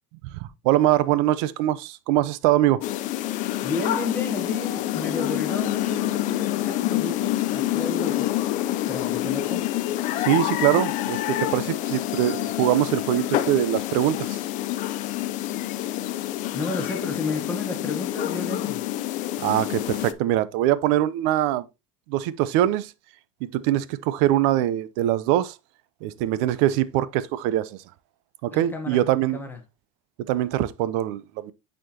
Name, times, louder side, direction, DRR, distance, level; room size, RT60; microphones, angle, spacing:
voice 1, 0.3-2.8 10.2-14.4 19.4-21.7 22.1-22.9 23.4-25.6 26.0-27.8 28.4-29.4 30.3-31.5, right 13 dB, 70° right, 0.6 m, -23 dB
sound 1, 2.8-20.1, left 14 dB, 50° left, 0.6 m, -27 dB
voice 2, 3.6-8.3 8.9-9.7 16.5-18.8 28.5-29.1 29.3-29.6, left 2 dB, 10° left, 1.1 m, -32 dB
9.3 x 4.3 x 2.8 m
cardioid pair, 140°, 16 cm